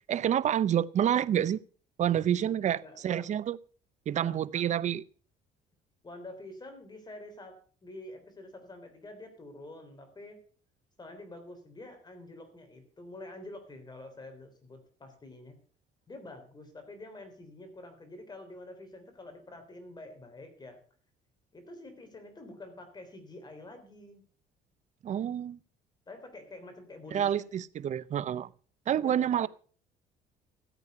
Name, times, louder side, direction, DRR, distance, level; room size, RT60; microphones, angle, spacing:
voice 1, 0.1-1.6 2.0-3.6 4.1-5.0 25.0-25.6 27.1-28.5 28.9-29.5, right 10 dB, 45° right, 0.6 m, -28 dB
voice 2, 2.8-3.3 4.2-4.4 6.0-10.4 11.0-15.6 16.1-20.8 21.5-24.2 26.1-27.4 28.9-29.5, left 2 dB, 25° left, 3.5 m, -47 dB
14.0 x 8.3 x 5.7 m
cardioid pair, 110°, 17 cm